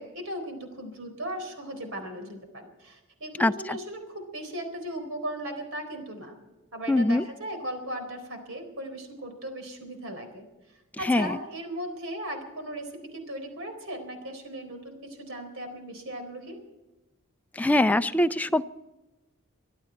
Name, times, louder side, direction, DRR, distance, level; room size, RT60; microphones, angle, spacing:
voice 1, 0.0-6.4 6.7-10.4 11.0-16.6, equal, 65° right, 6 dB, 4.1 m, -37 dB
voice 2, 3.4-3.8 6.9-7.2 11.0-11.4 17.6-18.6, left 1 dB, 5° left, 11 dB, 0.4 m, -23 dB
24.0 x 12.5 x 4.5 m, 1.1 s
head